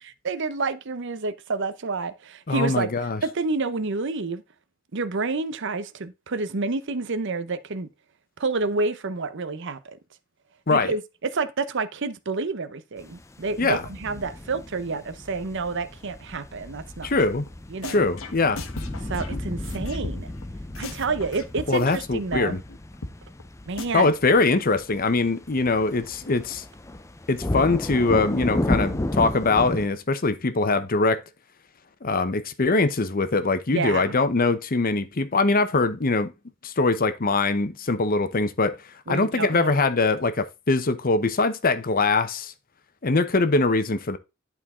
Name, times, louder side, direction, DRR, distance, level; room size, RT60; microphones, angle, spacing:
voice 1, 0.0-2.9 3.2-4.4 4.9-7.9 8.4-10.0 10.7-17.1 17.7-18.0 19.0-20.3 20.8-22.6 23.7-24.1 33.7-34.2 39.1-39.8, right 3 dB, 60° right, 0.8 m, -29 dB
voice 2, 2.5-3.2 10.7-10.9 13.6-13.8 17.0-17.4 17.9-18.6 21.7-22.6 23.9-26.6 27.3-31.2 32.0-36.3 36.6-38.8 39.1-42.5 43.0-44.2, left 3 dB, 45° left, 0.8 m, -22 dB
sound 1, 13.0-29.9, left 1 dB, 15° left, 0.5 m, -33 dB
sound 2, 17.5-17.6 17.8-20.4 20.7-22.0 22.3-22.4 22.7-22.8 23.0-23.1 23.4-23.5 23.8-23.9, left 2 dB, 80° left, 1.2 m, -37 dB
11.0 x 4.6 x 3.7 m
head